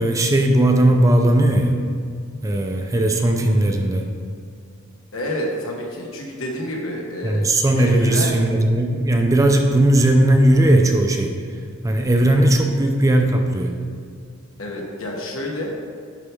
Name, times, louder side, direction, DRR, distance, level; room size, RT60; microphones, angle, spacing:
voice 1, 0.0-1.7 2.4-4.1 7.2-11.3 11.8-13.8, right 1 dB, 15° right, 3 dB, 0.5 m, -17 dB
voice 2, 5.1-7.5 7.8-8.4 14.6-15.7, left 1 dB, 80° left, -1 dB, 1.3 m, -28 dB
10.5 x 4.5 x 3.4 m, 2.1 s
head